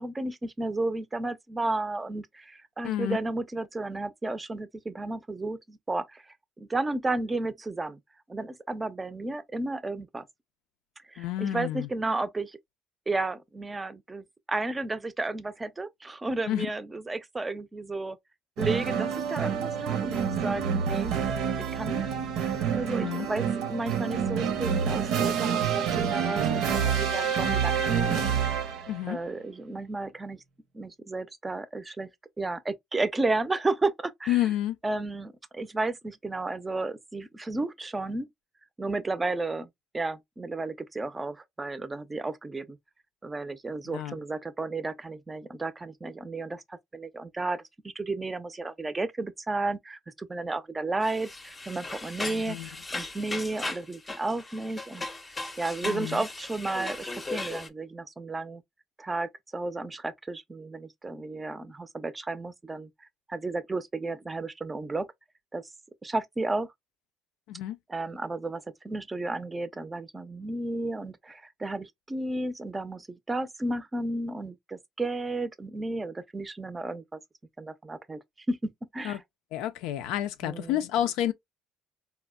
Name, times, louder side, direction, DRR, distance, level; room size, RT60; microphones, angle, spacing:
voice 1, 0.0-6.2 6.6-8.0 8.3-10.3 11.1-12.6 13.1-18.2 18.6-21.1 21.7-22.1 22.7-28.2 29.1-30.4 30.7-32.1 32.4-34.5 34.8-38.3 38.8-39.7 39.9-42.8 43.2-55.1 55.6-58.6 59.0-62.9 63.3-65.1 65.5-65.7 66.0-66.7 67.9-77.2 77.6-79.2 80.4-80.8, right 2 dB, 20° right, 0.5 m, -33 dB
voice 2, 2.8-3.2 11.2-11.9 16.5-16.7 22.8-23.3 28.9-29.2 34.3-34.8 43.9-44.1 52.3-52.7 55.8-56.2 67.5-67.8 79.0-79.2 79.5-81.3, left 12 dB, 80° left, 0.4 m, -30 dB
sound 1, 18.6-29.0, right 7 dB, 75° right, 0.7 m, -27 dB
sound 2, 51.0-57.7, left 2 dB, 20° left, 0.6 m, -37 dB
4.2 x 2.1 x 2.3 m
supercardioid pair, 90°, 0 cm